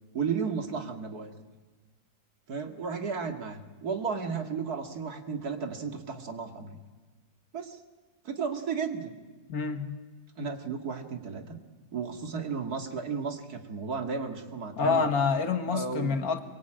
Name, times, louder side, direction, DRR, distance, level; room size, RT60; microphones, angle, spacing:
voice 1, 0.1-1.3 2.5-6.8 7.5-7.8 8.2-9.1 10.4-11.6 11.9-15.1 15.7-16.2, right 5 dB, 65° right, 6 dB, 2.6 m, -34 dB
voice 2, 9.5-9.9 14.8-16.4, left 5 dB, 65° left, 8 dB, 2.1 m, -27 dB
23.5 x 23.5 x 8.9 m, 1.3 s
omnidirectional pair, 1.7 m